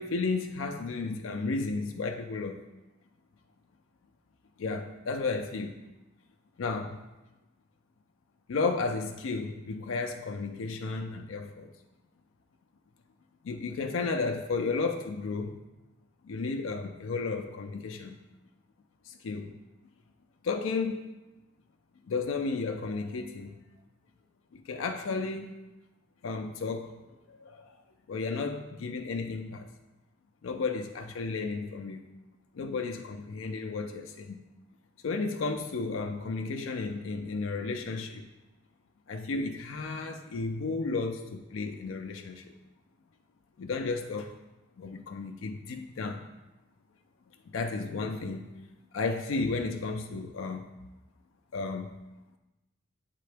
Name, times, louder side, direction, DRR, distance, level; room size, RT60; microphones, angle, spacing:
voice 1, 0.0-2.6 4.6-5.8 6.6-7.0 8.5-11.7 13.4-15.6 16.2-18.2 19.1-19.5 20.4-21.1 22.1-23.6 24.5-25.5 26.2-27.8 28.1-29.7 30.4-32.0 32.5-34.4 35.0-38.3 39.1-42.5 43.6-44.4 44.8-46.3 47.5-48.5 48.9-50.6 51.5-51.9, left 4 dB, 90° left, 5 dB, 0.4 m, -33 dB
7.7 x 3.7 x 3.3 m, 1.0 s
head